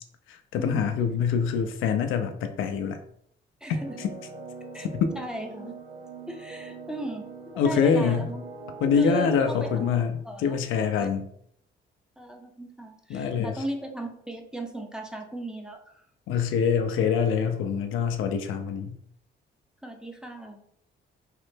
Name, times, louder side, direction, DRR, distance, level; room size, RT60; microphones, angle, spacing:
voice 1, 0.5-3.0 3.7-4.1 5.0-5.1 7.6-8.2 8.8-11.3 13.1-13.5 16.3-18.9, left 6 dB, 80° left, 7 dB, 0.4 m, -25 dB
voice 2, 3.6-4.0 4.7-4.9 5.2-5.8 6.3-7.2 7.5-8.4 8.9-9.9 10.2-10.6 11.0-11.1 12.2-16.0 19.8-20.6, right 1 dB, 5° right, 2 dB, 0.5 m, -36 dB
sound 1, 3.7-10.0, right 3 dB, 25° right, 0.8 m, -42 dB
3.1 x 2.1 x 3.2 m, 0.67 s
cardioid pair, 90°, 20 cm